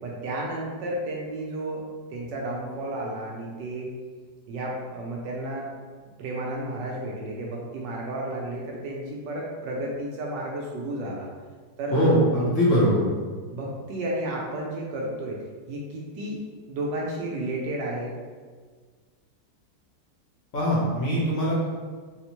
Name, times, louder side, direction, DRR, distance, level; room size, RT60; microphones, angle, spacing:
voice 1, 0.0-1.8 2.1-3.9 4.5-5.7 6.2-11.3 11.8-12.0 12.4-12.5 13.5-15.4 15.7-16.4 16.7-18.1, right 1 dB, 75° right, -2 dB, 1.2 m, -32 dB
voice 2, 11.9-13.1 20.5-21.6, equal, 55° left, -6 dB, 1.0 m, -21 dB
4.1 x 2.1 x 2.9 m, 1.5 s
omnidirectional pair, 2.0 m